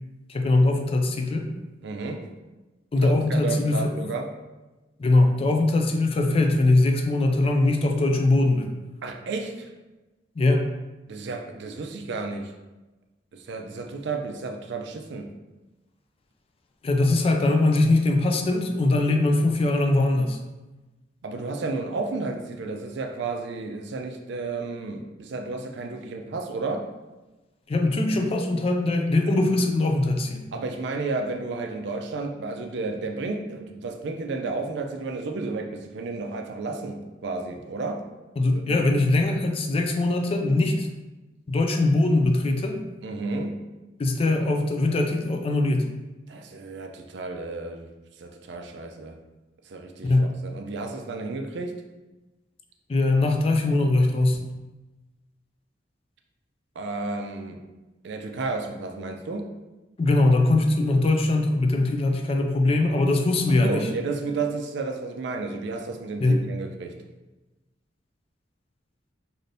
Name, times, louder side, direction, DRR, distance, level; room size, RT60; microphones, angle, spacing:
voice 1, 0.3-1.5 2.9-3.9 5.0-8.7 10.4-10.7 16.8-20.4 27.7-30.5 38.4-40.9 41.5-42.8 44.0-45.9 50.0-50.3 52.9-54.5 60.0-63.9 66.2-66.4, left 2 dB, 30° left, 4 dB, 0.3 m, -21 dB
voice 2, 1.8-2.2 3.0-4.3 9.0-9.7 11.1-12.5 13.3-15.3 21.2-26.8 30.5-38.0 38.5-38.8 43.0-43.6 46.3-47.9 48.2-49.2 49.7-51.7 56.8-57.6 58.0-59.5 63.6-66.9, right 3 dB, 65° right, 4 dB, 0.4 m, -32 dB
3.2 x 2.6 x 2.6 m, 1.1 s
head